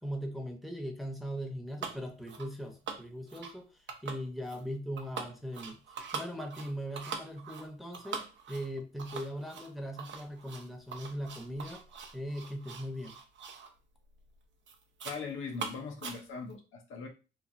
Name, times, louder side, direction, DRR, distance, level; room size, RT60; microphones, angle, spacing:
voice 1, 0.0-5.8 6.1-11.8 12.1-13.2, equal, ahead, 4 dB, 0.7 m, -39 dB
sound 1, 1.8-2.0 2.3-2.5 2.9-3.6 3.9-4.6 5.0-13.7 14.1-14.3 14.7-15.2 15.5-16.5, right 5 dB, 65° right, 0.5 m, -43 dB
voice 2, 15.0-17.1, left 5 dB, 90° left, 2 dB, 0.7 m, -40 dB
3.1 x 2.2 x 2.5 m, 0.31 s
cardioid pair, 80°, 20 cm